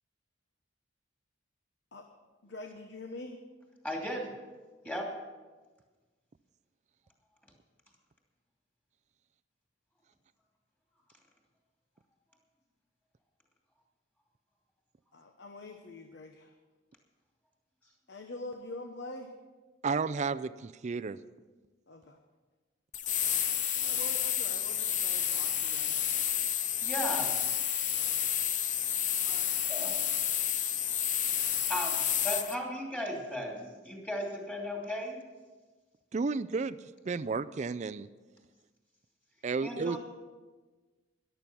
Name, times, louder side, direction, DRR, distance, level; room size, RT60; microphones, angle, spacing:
voice 1, 2.4-3.4 15.1-16.5 18.1-19.3 21.9-22.2 23.8-26.1 29.2-29.6, left 2 dB, 60° left, 5 dB, 1.0 m, -45 dB
voice 2, 3.8-4.3 4.8-5.1 26.8-27.4 29.7-30.2 31.5-35.2 39.6-40.0, equal, 10° left, -1 dB, 2.8 m, -36 dB
voice 3, 19.8-21.2 36.1-36.8 37.1-38.1 39.4-40.0, right 4 dB, 35° right, 13 dB, 0.4 m, -32 dB
sound 1, 22.9-32.5, left 9 dB, 40° left, 0.7 m, -30 dB
14.0 x 11.5 x 6.1 m, 1.3 s
head